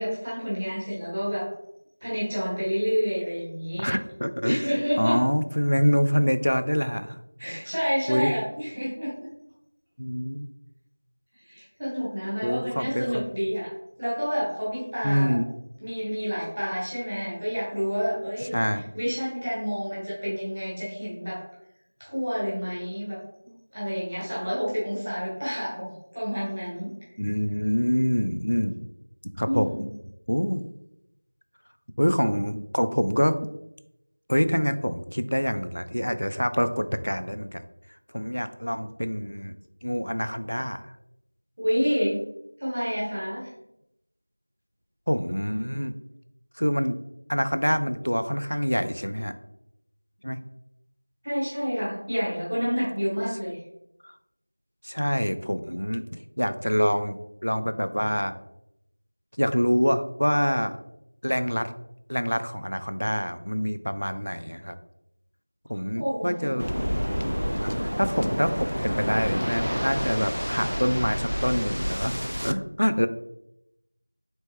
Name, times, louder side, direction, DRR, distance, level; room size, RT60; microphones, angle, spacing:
voice 1, 0.0-1.5 2.0-4.0 4.4-5.2 7.4-9.3 11.4-13.7 14.0-15.4 15.8-21.4 22.0-26.9 29.4-29.9 41.6-42.2 42.6-43.5 51.2-53.6 66.0-66.7, equal, 15° right, -8 dB, 0.7 m, -29 dB
voice 2, 3.8-7.2 8.1-8.3 10.0-10.5 12.4-13.2 15.0-15.5 18.5-18.9 27.2-28.9 29.2-29.7 30.3-30.6 32.0-33.5 34.3-37.6 38.1-39.6 39.8-40.9 45.1-45.9 46.6-47.0 47.3-49.3 50.2-50.4 54.0-54.1 54.8-57.2 57.4-58.4 59.4-60.8 61.2-61.7 62.1-64.8 65.7-66.7 67.6-73.1, equal, 60° left, 10 dB, 0.4 m, -26 dB
Waves surf, 66.6-72.5, equal, 90° right, 0.4 m, -28 dB
4.2 x 3.1 x 3.2 m, 0.83 s
figure-of-eight pair, 180°, 0 cm